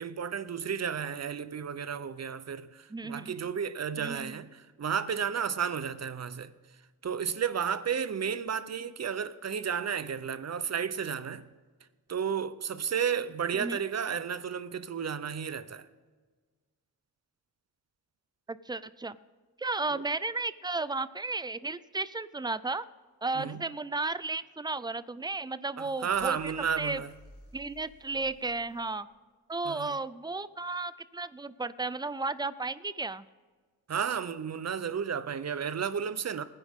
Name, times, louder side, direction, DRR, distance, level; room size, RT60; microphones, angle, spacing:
voice 1, 0.0-6.5 7.0-11.4 12.1-15.9 19.9-20.0 23.4-23.6 25.8-27.1 29.7-30.0 33.9-36.4, right 7 dB, 40° right, 0.6 m, -32 dB
voice 2, 2.9-3.3 4.0-4.4 13.5-13.8 18.5-19.2 19.6-22.8 23.2-27.0 27.5-29.1 29.5-33.3, right 3 dB, 10° right, 0.3 m, -34 dB
sound 1, 25.9-28.9, left 1 dB, 80° left, 4.7 m, -55 dB
20.0 x 9.8 x 3.6 m
wide cardioid pair, 135°, 39 cm